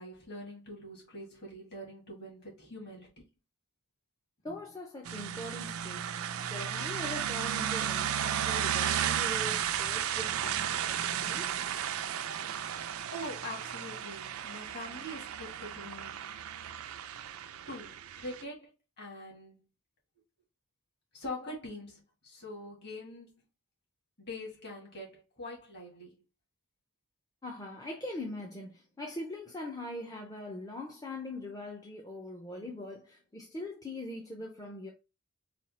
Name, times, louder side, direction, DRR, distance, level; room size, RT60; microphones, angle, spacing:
voice 1, 0.0-3.2 13.1-16.3 17.7-18.7 19.0-19.7 21.1-23.4 24.2-26.1, left 1 dB, 50° left, 2.0 m, -44 dB
voice 2, 4.4-6.1 6.4-11.5 27.4-34.9, left 1 dB, 15° left, 0.5 m, -42 dB
sound 1, 5.1-18.4, right 9 dB, 75° right, 0.4 m, -34 dB
4.2 x 2.3 x 4.2 m
head